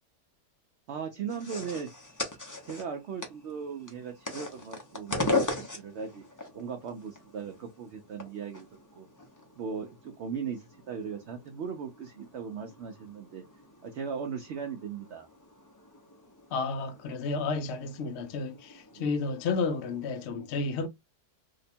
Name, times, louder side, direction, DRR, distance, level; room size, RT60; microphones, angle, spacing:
voice 1, 0.9-1.9 2.7-6.2 6.5-9.1 9.6-13.4 13.8-15.3 18.9-19.1, right 6 dB, 70° right, 0.6 m, -38 dB
sound 1, 1.3-20.3, left 3 dB, 30° left, 0.3 m, -39 dB
voice 2, 16.5-20.9, left 4 dB, 65° left, 0.6 m, -31 dB
2.9 x 2.2 x 4.1 m
omnidirectional pair, 1.7 m